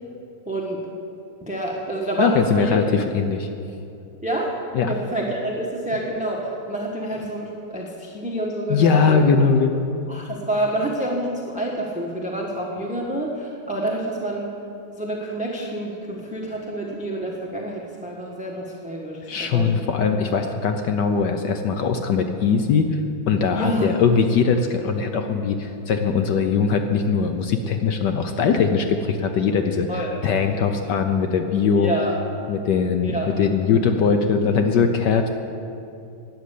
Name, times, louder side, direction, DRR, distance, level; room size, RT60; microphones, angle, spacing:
voice 1, 0.5-0.8 1.4-2.8 4.2-4.6 4.9-9.2 10.1-14.5 15.0-19.9 23.5-23.9 29.9-30.1 31.8-32.2 33.0-33.4, right 1 dB, 5° right, -1 dB, 0.9 m, -28 dB
voice 2, 2.2-3.5 4.7-4.9 8.7-10.0 19.3-23.0 23.3-31.9 32.5-35.3, left 5 dB, 65° left, 6 dB, 1.1 m, -21 dB
12.5 x 9.4 x 8.4 m, 2.6 s
omnidirectional pair, 2.4 m